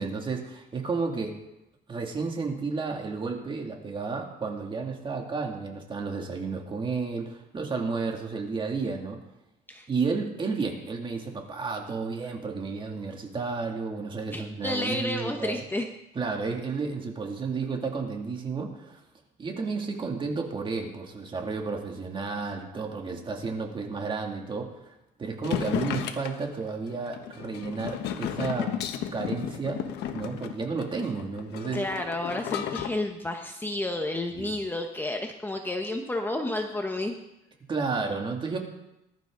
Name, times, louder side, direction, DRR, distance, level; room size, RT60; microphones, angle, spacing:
voice 1, 0.0-1.4 1.9-9.2 9.9-15.6 16.1-19.0 19.4-24.7 25.2-28.7 29.1-29.8 30.1-31.8 34.3-34.6 37.7-38.6, right 4 dB, 30° right, 1 dB, 2.5 m, -32 dB
voice 2, 14.3-15.9 31.7-37.2, left 1 dB, 10° left, 4 dB, 1.1 m, -31 dB
sound 1, 25.4-32.9, left 10 dB, 85° left, 1.2 m, -33 dB
20.0 x 12.0 x 3.9 m, 0.92 s
cardioid pair, 130°, 17 cm